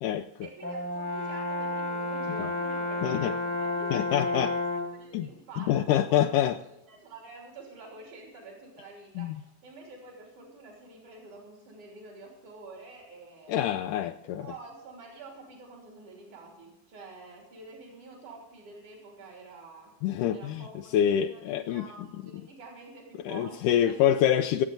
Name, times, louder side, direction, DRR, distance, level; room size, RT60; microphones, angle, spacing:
voice 1, 0.4-4.3 4.7-6.4 6.6-13.6 14.2-19.9 20.3-24.0, right 3 dB, 60° right, 4.7 m, -48 dB
Brass instrument, 0.6-5.0, left 2 dB, 5° left, 1.4 m, -31 dB
voice 2, 3.0-3.3 3.9-4.5 5.1-5.3 5.6-6.6 9.2-9.4 13.5-14.5 20.0-20.6 20.9-21.8 23.3-24.6, left 10 dB, 80° left, 2.0 m, -26 dB
25.0 x 8.6 x 3.9 m
omnidirectional pair, 3.9 m